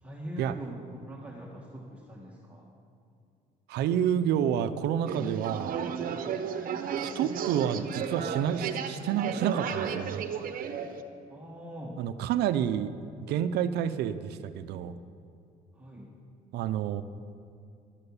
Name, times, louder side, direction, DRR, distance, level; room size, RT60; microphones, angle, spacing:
voice 1, 0.0-2.7 11.3-12.0 15.7-16.1, equal, 10° right, -4 dB, 1.6 m, -42 dB
voice 2, 3.7-5.8 7.0-10.2 12.0-12.9 13.2-14.9 16.5-17.0, right 9 dB, 80° right, 12 dB, 0.6 m, -29 dB
sound 1, 5.1-11.0, right 7 dB, 55° right, 1.0 m, -33 dB
11.5 x 11.0 x 7.2 m, 2.5 s
cardioid pair, 110°, 17 cm